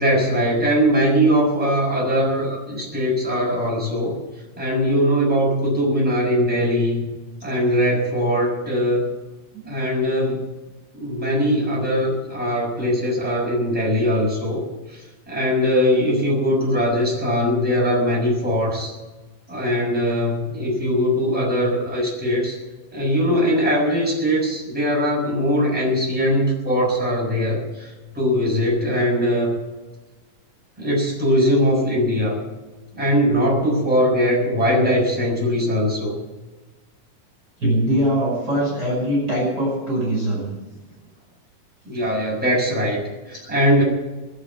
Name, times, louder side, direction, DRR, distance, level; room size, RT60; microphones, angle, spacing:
voice 1, 0.0-4.2 4.6-7.1 7.4-9.1 9.7-10.5 10.9-14.6 14.9-15.0 15.3-18.9 19.5-22.6 22.9-29.6 30.8-32.4 32.9-36.1 41.8-43.8, equal, 5° right, -4 dB, 6.3 m, -21 dB
voice 2, 37.6-40.5 43.4-43.5, right 1 dB, 25° right, -3 dB, 5.9 m, -22 dB
20.5 x 7.7 x 8.5 m, 1.1 s
omnidirectional pair, 3.8 m